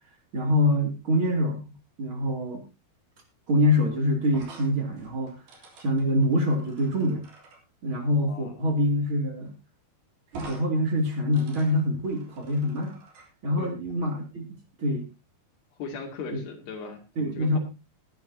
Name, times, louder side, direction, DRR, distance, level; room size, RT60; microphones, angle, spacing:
voice 1, 0.3-2.6 3.5-5.3 5.8-7.2 7.8-9.5 10.3-12.9 13.4-14.4 14.8-15.1 17.2-17.6, left 1 dB, 35° right, 2 dB, 3.2 m, -25 dB
sound 1, 4.2-7.6 9.1-9.2 9.5-9.6 10.3-10.7 11.0-13.3, right 3 dB, 75° right, 5.2 m, -47 dB
voice 2, 8.2-8.5 13.6-13.7 15.8-17.0 17.4-17.6, left 5 dB, 90° left, 2 dB, 4.5 m, -38 dB
20.5 x 10.5 x 2.8 m, 0.26 s
omnidirectional pair, 4.5 m